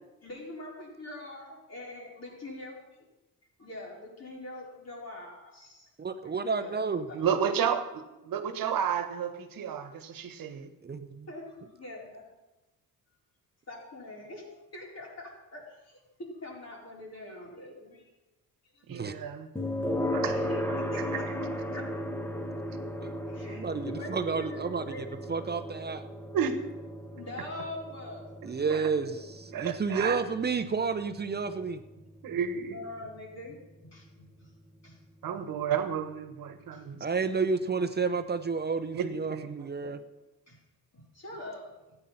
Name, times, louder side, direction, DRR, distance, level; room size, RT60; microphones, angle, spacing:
voice 1, 0.2-2.7 3.6-5.9 6.5-7.5 11.3-12.2 13.7-18.1 18.7-19.3 19.8-20.0 20.2-21.3 21.7-21.8 23.3-25.2 27.1-28.5 29.0-29.2 32.3-32.4 32.6-34.5 34.8-35.0 35.3-35.4 36.7-36.9 40.5-40.6 40.9-42.0, left 1 dB, 45° left, -3 dB, 4.6 m, -44 dB
voice 2, 6.0-7.1 10.8-11.3 18.9-19.1 23.0-23.1 23.5-25.0 25.3-26.0 28.4-31.8 37.0-40.0, right 5 dB, 30° right, 9 dB, 0.7 m, -31 dB
voice 3, 7.1-10.7 18.9-19.5 20.1-20.4 26.3-26.6 28.7-28.8 29.5-30.2 32.2-32.8 35.2-37.0 38.9-40.0, right 7 dB, 70° right, 9 dB, 1.3 m, -32 dB
sound 1, 19.6-34.5, left 1 dB, 5° left, 1.2 m, -36 dB
13.5 x 9.0 x 5.7 m, 1.0 s
cardioid pair, 105°, 36 cm